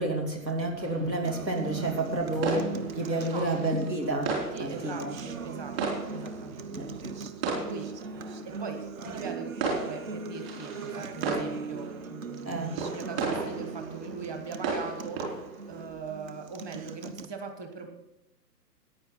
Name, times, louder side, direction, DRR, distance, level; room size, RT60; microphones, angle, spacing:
voice 1, 0.0-4.3 4.6-5.1 6.7-7.1 12.5-12.8, right 2 dB, 80° right, 2 dB, 2.9 m, -30 dB
sound 1, 0.8-15.9, right 4 dB, 35° right, 4.2 m, -37 dB
Acoustic guitar, 1.2-17.3, right 4 dB, 55° right, 1.0 m, -40 dB
voice 2, 4.5-6.9 7.4-12.6 12.9-15.2 15.7-17.9, right 4 dB, 15° right, 5 dB, 1.2 m, -41 dB
14.5 x 9.7 x 4.0 m, 0.84 s
figure-of-eight pair, 125°, 50 cm